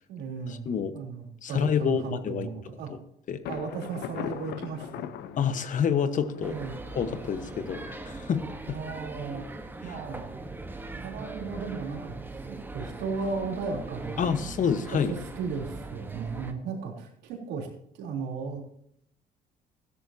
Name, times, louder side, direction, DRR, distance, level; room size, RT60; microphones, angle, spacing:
voice 1, 0.1-0.7 0.9-2.9 3.5-5.1 6.3-6.8 8.7-9.4 9.8-10.4 11.0-14.4 14.9-17.7 17.9-18.6, right 5 dB, 90° right, 0 dB, 3.6 m, -35 dB
voice 2, 0.7-1.0 1.4-2.5 3.3-3.4 5.4-6.5 6.9-8.4 14.2-15.1, left 7 dB, 50° left, 10 dB, 1.2 m, -27 dB
Thunder, 3.4-9.1, left 9 dB, 75° left, 0.9 m, -41 dB
sound 1, 6.4-16.5, right 2 dB, 10° right, 1.3 m, -40 dB
15.5 x 13.0 x 2.8 m, 0.70 s
cardioid pair, 110°, 17 cm